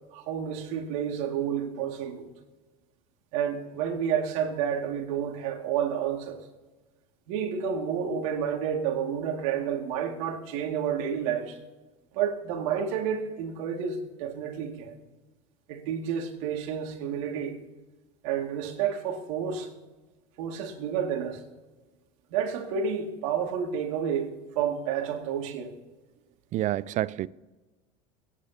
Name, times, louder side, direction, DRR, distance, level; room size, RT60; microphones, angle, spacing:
voice 1, 0.1-2.3 3.3-6.4 7.3-11.6 12.1-14.9 15.7-17.6 18.2-19.7 20.4-21.4 22.3-24.3 24.6-25.7, right 8 dB, 75° right, 2.2 m, -30 dB
voice 2, 26.5-27.3, right 14 dB, 45° right, 0.5 m, -28 dB
22.0 x 9.9 x 2.8 m
supercardioid pair, 95°, 18 cm